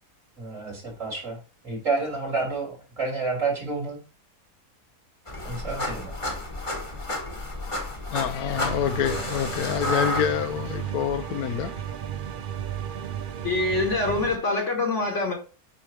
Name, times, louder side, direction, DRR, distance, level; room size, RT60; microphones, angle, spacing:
voice 1, 0.4-1.4 1.6-4.0 5.4-6.1, right 3 dB, 55° right, 3.5 m, -29 dB
sound 1, 5.3-10.8, left 1 dB, 20° left, 1.2 m, -31 dB
voice 2, 8.1-11.8, left 9 dB, 75° left, 1.1 m, -27 dB
sound 2, 8.5-14.4, right 9 dB, 75° right, 0.4 m, -34 dB
voice 3, 13.4-15.3, left 2 dB, 50° left, 1.5 m, -25 dB
7.5 x 5.0 x 3.1 m
omnidirectional pair, 1.6 m